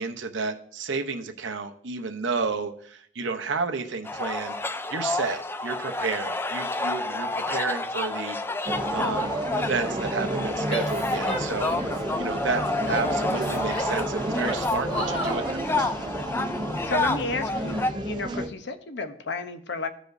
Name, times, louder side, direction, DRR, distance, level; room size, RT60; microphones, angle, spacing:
voice 1, 0.0-8.4 8.9-11.7 12.2-15.8, right 4 dB, 80° right, 5 dB, 0.8 m, -31 dB
sound 1, 4.0-17.9, left 2 dB, 10° left, 0.3 m, -30 dB
sound 2, 8.7-18.5, right 1 dB, 25° right, 0.7 m, -31 dB
Female speech woman speaking / Yell, 10.7-12.0 12.5-14.0 14.4-15.5, right 1 dB, 30° left, 2.5 m, -34 dB
voice 2, 16.8-19.9, left 3 dB, 65° left, 8 dB, 0.8 m, -32 dB
15.0 x 5.0 x 2.6 m, 0.63 s
head